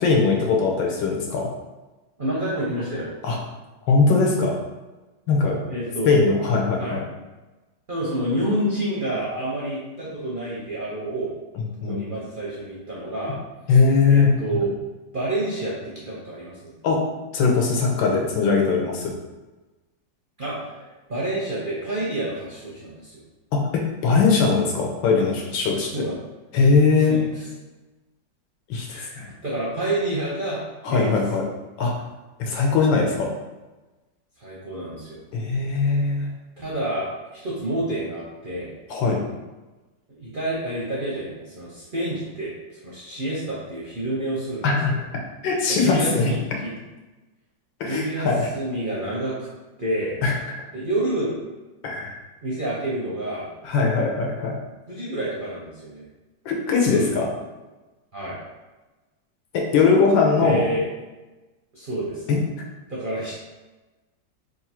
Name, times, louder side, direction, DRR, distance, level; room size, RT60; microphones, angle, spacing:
voice 1, 0.0-1.5 3.2-3.4 3.9-4.6 5.3-5.6 6.0-7.0 11.6-12.0 13.7-14.3 16.8-17.0 17.3-19.2 23.5-25.9 26.5-27.2 28.7-29.3 30.8-31.4 31.8-31.9 32.4-33.3 35.3-36.3 38.9-39.2 44.6-44.9 45.4-46.3 47.8-48.5 50.2-50.3 51.8-52.2 53.6-54.6 56.4-57.3 59.5-60.6 62.3-62.4, left 4 dB, 90° left, 0 dB, 1.5 m, -20 dB
voice 2, 2.2-3.1 5.7-6.3 6.8-7.0 7.9-11.3 11.8-13.4 14.1-14.7 15.1-16.7 20.4-23.1 25.8-26.2 27.1-27.4 28.9-29.1 29.4-31.2 34.4-35.2 36.6-38.7 40.2-45.0 45.7-46.7 47.8-49.5 49.8-50.2 50.7-51.4 52.4-53.5 54.9-56.0 56.9-57.2 58.1-58.4 60.4-60.9 61.7-62.2 62.9-63.3, right 1 dB, 55° right, -7 dB, 0.5 m, -28 dB
3.7 x 2.5 x 4.3 m, 1.2 s
omnidirectional pair, 2.0 m